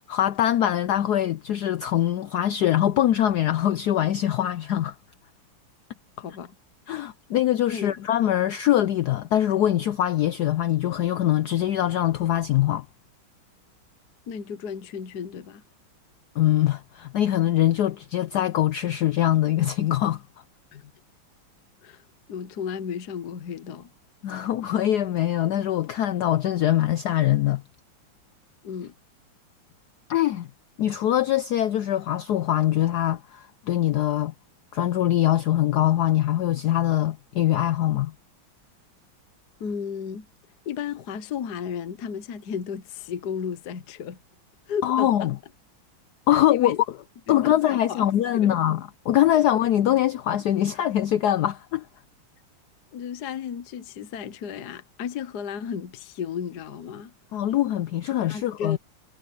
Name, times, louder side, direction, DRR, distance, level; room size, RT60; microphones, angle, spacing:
voice 1, 0.1-4.9 6.9-12.9 16.4-20.2 24.2-27.6 30.1-30.5 30.8-34.3 34.7-38.1 44.8-45.4 46.3-46.8 47.3-51.9 57.3-58.8, left 12 dB, 75° left, 0.9 m, -23 dB
voice 2, 6.2-6.5 7.7-7.9 14.3-15.6 20.7-20.9 21.8-22.0 22.3-23.9 28.6-28.9 39.6-40.3 40.6-44.2 44.7-45.3 46.3-46.8 47.3-48.1 48.3-48.5 49.3-49.4 52.9-57.1 58.2-58.8, left 7 dB, 55° left, 1.5 m, -34 dB
omnidirectional pair, 2.3 m